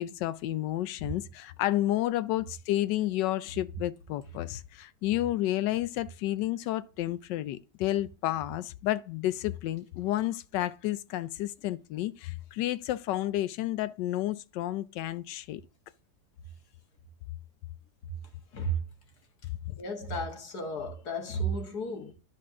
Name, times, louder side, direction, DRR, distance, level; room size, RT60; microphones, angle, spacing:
voice 1, 0.0-15.6 19.7-19.8, left 14 dB, 85° left, 1.2 m, -31 dB
voice 2, 19.8-22.1, right 2 dB, 65° left, 2.0 m, -33 dB
12.5 x 4.3 x 3.7 m
omnidirectional pair, 1.8 m